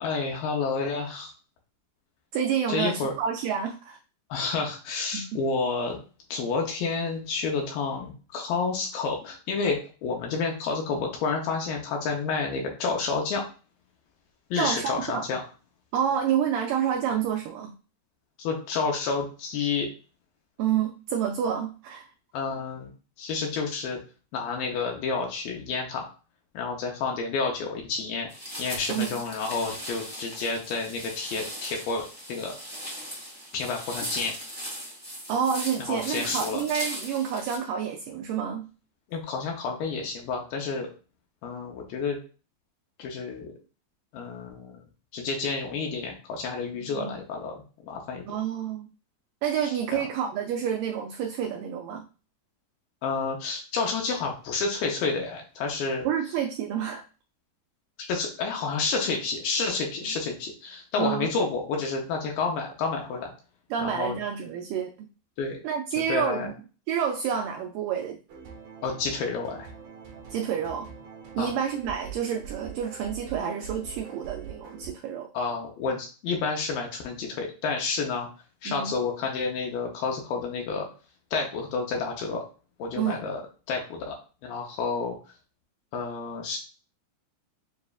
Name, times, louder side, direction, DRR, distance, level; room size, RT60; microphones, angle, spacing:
voice 1, 0.0-1.3 2.7-3.1 4.3-6.0 6.3-13.4 14.5-15.4 18.4-19.9 22.3-22.9 23.2-24.0 24.3-26.1 26.5-28.3 28.6-32.5 33.5-34.3 35.8-36.6 39.1-40.9 41.4-42.2 43.0-43.5 44.1-44.8 45.1-47.6 47.8-48.2 49.6-50.0 53.0-56.0 58.1-63.3 63.8-64.2 65.4-65.6 66.1-66.5 68.8-69.7 71.4-71.5 75.3-78.3 78.6-80.9 81.3-82.4 82.8-83.4 83.7-84.2 84.4-85.2 85.9-86.6, left 4 dB, 75° left, 1 dB, 2.4 m, -30 dB
voice 2, 2.3-4.0 5.1-5.2 14.6-15.2 15.9-17.7 20.6-22.1 28.9-29.2 35.3-38.7 46.7-47.2 48.3-48.9 49.4-52.1 56.0-57.0 60.0-60.1 61.0-61.3 63.7-64.9 65.6-66.6 66.9-68.2 70.3-70.9 71.4-75.3 78.7-78.9 83.0-83.2, right 8 dB, 90° right, 4 dB, 1.8 m, -29 dB
sound 1, 28.3-37.6, equal, 15° left, 0.8 m, -38 dB
sound 2, 68.3-74.9, right 7 dB, 70° right, 1.7 m, -43 dB
6.8 x 2.5 x 2.3 m, 0.34 s
omnidirectional pair, 4.3 m